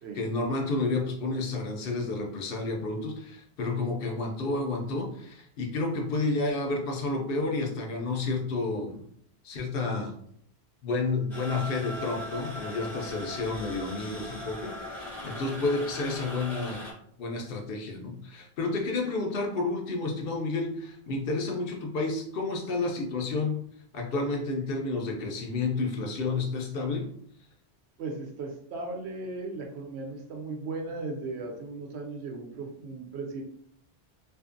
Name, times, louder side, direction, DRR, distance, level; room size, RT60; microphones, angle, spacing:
voice 1, 0.1-9.0 9.4-10.1 10.8-16.8 17.2-23.6 23.9-27.1, left 3 dB, 65° left, 2 dB, 0.7 m, -30 dB
sound 1, 11.3-16.9, left 1 dB, ahead, 0.8 m, -39 dB
voice 2, 28.0-33.4, right 3 dB, 85° right, 2 dB, 0.9 m, -37 dB
2.6 x 2.5 x 2.4 m, 0.65 s
omnidirectional pair, 1.1 m